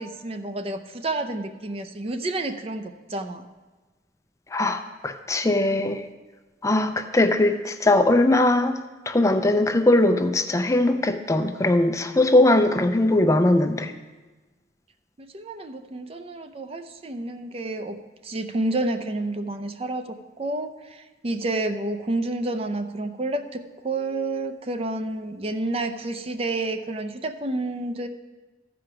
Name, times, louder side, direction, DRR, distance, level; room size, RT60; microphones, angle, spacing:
voice 1, 0.0-3.5 15.3-18.0 18.2-28.1, right 2 dB, 35° right, 7 dB, 0.5 m, -29 dB
voice 2, 4.5-6.1 6.6-8.8 9.1-13.9, left 2 dB, 20° left, 7 dB, 0.4 m, -20 dB
14.0 x 5.1 x 5.8 m, 1.3 s
head